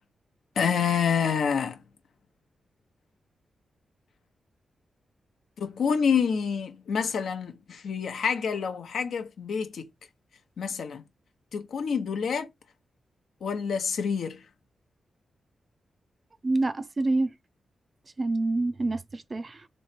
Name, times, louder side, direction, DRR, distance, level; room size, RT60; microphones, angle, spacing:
voice 1, 0.6-1.8 5.6-9.9 10.6-11.0 11.5-12.5 13.4-14.4, left 6 dB, 80° left, 0.8 m, -27 dB
voice 2, 16.4-17.3 18.2-19.7, right 2 dB, 30° right, 0.4 m, -27 dB
3.2 x 3.1 x 4.2 m
wide cardioid pair, 120°, 0 cm